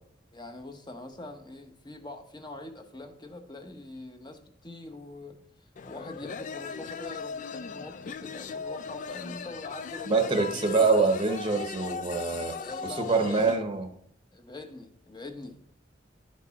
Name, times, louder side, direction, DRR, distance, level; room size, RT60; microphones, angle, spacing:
voice 1, 0.3-5.4 5.8-10.9 12.6-13.7 14.3-15.7, left 2 dB, 25° left, 6 dB, 0.9 m, -43 dB
sound 1, 5.8-13.6, left 6 dB, 40° left, 0.3 m, -38 dB
voice 2, 10.1-12.5 13.0-13.9, right 4 dB, 25° right, 5 dB, 0.8 m, -25 dB
11.0 x 5.3 x 4.0 m, 0.67 s
head